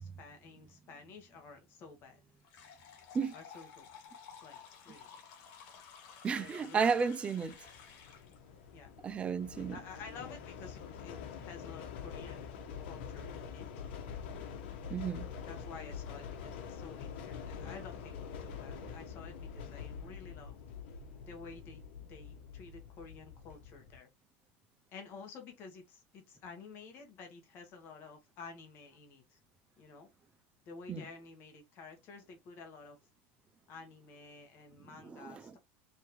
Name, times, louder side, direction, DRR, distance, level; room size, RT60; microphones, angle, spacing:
voice 1, 0.0-2.2 3.3-4.0 4.4-4.6 4.8-5.2 6.4-6.8 8.7-8.9 9.7-13.7 15.5-20.6 21.2-24.1 24.9-29.4 29.8-30.1 30.6-33.0 33.7-35.6, left 4 dB, 45° left, 1.4 m, -51 dB
sound 1, 2.4-8.4, left 7 dB, 60° left, 2.0 m, -54 dB
voice 2, 6.2-7.6 9.0-9.8 14.9-15.3 30.9-31.1 35.1-35.5, right 5 dB, 20° right, 0.4 m, -33 dB
sound 2, 7.5-24.0, left 7 dB, 80° left, 1.2 m, -45 dB
4.4 x 3.5 x 3.1 m
supercardioid pair, 150°, 6 cm